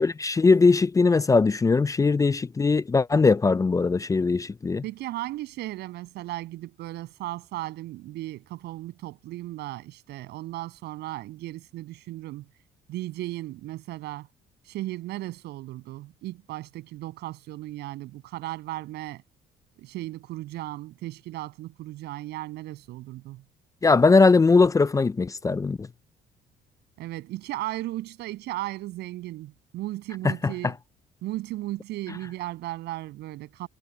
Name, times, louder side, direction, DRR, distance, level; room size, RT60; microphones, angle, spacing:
voice 1, 0.0-4.8 23.8-25.9 30.2-30.5, left 4 dB, 20° left, 0.6 m, -20 dB
voice 2, 4.8-12.5 12.9-14.3 14.6-19.2 19.8-23.4 27.0-30.8 31.2-33.7, right 16 dB, 80° right, 7.9 m, -36 dB
cardioid pair, 110°, 17 cm